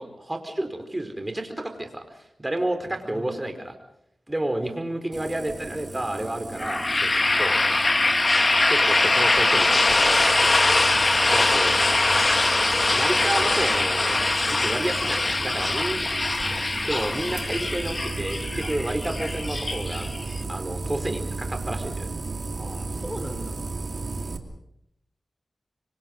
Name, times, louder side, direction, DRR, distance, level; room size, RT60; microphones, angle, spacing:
voice 1, 0.0-3.7 4.3-7.6 8.7-10.4 11.3-11.8 12.9-16.0 16.8-20.1 20.5-22.1, right 1 dB, 20° right, 7 dB, 4.6 m, -30 dB
voice 2, 3.0-3.3 22.6-23.7, equal, ahead, 5 dB, 4.4 m, -39 dB
sound 1, 5.1-24.4, right 3 dB, 60° right, 2.7 m, -35 dB
sound 2, 6.6-20.4, left 2 dB, 40° left, 1.5 m, -22 dB
25.5 x 25.0 x 5.5 m, 0.75 s
cardioid pair, 55°, 0 cm